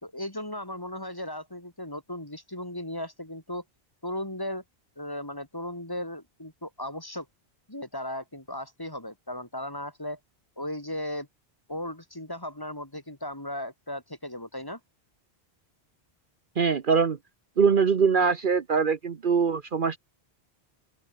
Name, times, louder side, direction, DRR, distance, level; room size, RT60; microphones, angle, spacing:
voice 1, 0.0-3.6 4.0-4.6 5.0-7.3 7.7-10.2 10.6-11.3 11.7-14.8, left 1 dB, 20° left, 2.6 m, -36 dB
voice 2, 16.6-17.2 17.6-20.0, right 5 dB, 50° right, 1.1 m, -23 dB
open air
omnidirectional pair, 1.1 m